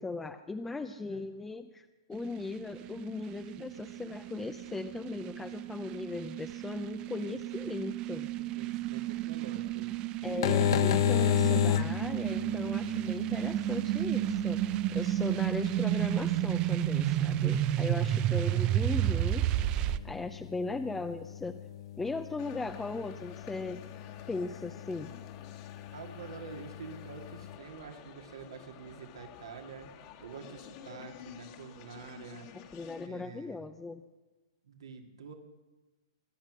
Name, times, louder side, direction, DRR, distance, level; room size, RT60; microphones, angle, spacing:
voice 1, 0.0-8.3 10.2-19.5 20.0-21.6 22.0-23.8 24.3-25.1 32.7-34.0, left 3 dB, 10° left, 7 dB, 0.6 m, -38 dB
sound 1, 2.1-20.0, right 14 dB, 35° right, 0.6 m, -32 dB
voice 2, 8.3-9.9 17.6-18.0 25.9-29.9 30.2-33.6 34.6-35.3, right 6 dB, 75° right, 3 dB, 2.3 m, -47 dB
sound 2, 10.2-27.6, left 11 dB, 60° left, 1.0 m, -35 dB
sound 3, 22.4-33.1, left 9 dB, 45° left, 1.9 m, -51 dB
21.5 x 10.5 x 6.2 m, 1.2 s
hypercardioid pair, 125°, 3 cm